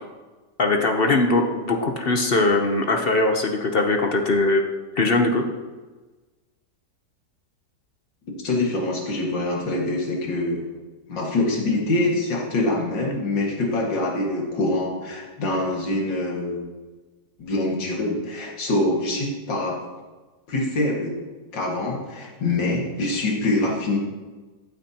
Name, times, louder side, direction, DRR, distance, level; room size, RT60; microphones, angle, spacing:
voice 1, 0.6-4.6 5.0-5.4, left 2 dB, 45° left, 3 dB, 0.8 m, -21 dB
voice 2, 8.4-10.6 11.1-16.6 17.4-19.7 20.5-21.1 21.5-24.0, left 2 dB, 90° left, -2 dB, 2.6 m, -24 dB
14.5 x 8.9 x 2.9 m, 1.3 s
omnidirectional pair, 1.9 m